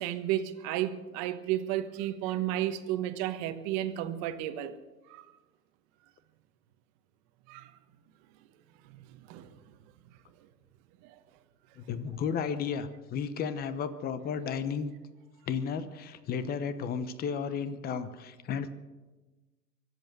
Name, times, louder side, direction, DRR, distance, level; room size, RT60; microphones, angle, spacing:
voice 1, 0.0-4.7 5.1-5.3 7.5-7.7 8.9-9.6 11.0-11.1, right 12 dB, 35° right, 1.3 m, -33 dB
voice 2, 11.8-14.9 15.5-18.7, left 6 dB, 20° left, 0.9 m, -33 dB
24.0 x 8.1 x 6.7 m
hypercardioid pair, 125°, 48 cm